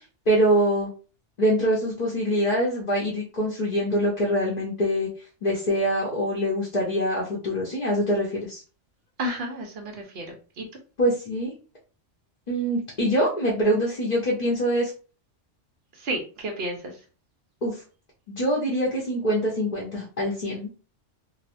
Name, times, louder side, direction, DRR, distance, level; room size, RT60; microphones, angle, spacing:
voice 1, 0.3-0.9 1.4-5.1 5.4-8.6 11.0-11.5 12.5-14.9 17.6-17.8 18.3-20.8, equal, 40° left, -4 dB, 0.8 m, -24 dB
voice 2, 9.2-10.7 15.9-17.0, right 1 dB, 60° right, 2 dB, 1.0 m, -32 dB
3.1 x 2.1 x 2.5 m, 0.35 s
omnidirectional pair, 1.2 m